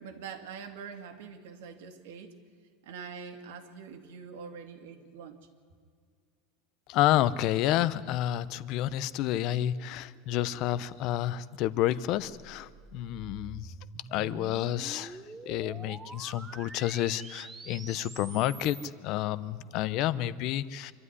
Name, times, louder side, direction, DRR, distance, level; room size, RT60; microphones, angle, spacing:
voice 1, 0.0-2.3 2.8-5.5, right 6 dB, 80° right, 5 dB, 2.3 m, -44 dB
voice 2, 6.9-13.7 14.1-20.9, left 13 dB, 40° left, 17 dB, 0.6 m, -30 dB
sound 1, 12.2-18.9, right 4 dB, 10° right, 0.8 m, -47 dB
25.5 x 12.5 x 9.7 m, 2.1 s
supercardioid pair, 170°, 0 cm